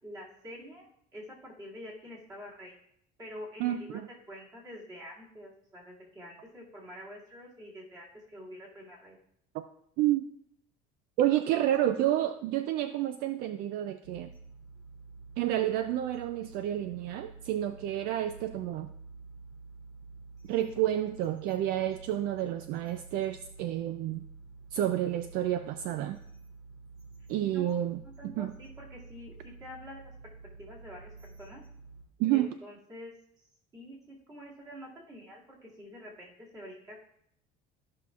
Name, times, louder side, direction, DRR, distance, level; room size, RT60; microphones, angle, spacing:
voice 1, 0.0-2.8 3.2-4.0 4.3-9.2 27.4-30.1 30.6-31.6 32.3-33.1 33.7-37.0, equal, 20° right, -5 dB, 2.3 m, -47 dB
voice 2, 3.6-4.1 9.5-9.6 10.0-10.3 11.2-14.3 15.4-18.9 20.5-24.2 24.7-26.2 27.3-28.5 32.2-32.5, right 12 dB, 60° right, 10 dB, 0.4 m, -30 dB
sound 1, 14.0-32.0, right 4 dB, 90° right, 2.4 m, -50 dB
14.0 x 5.8 x 2.4 m, 0.71 s
cardioid pair, 175°, 17 cm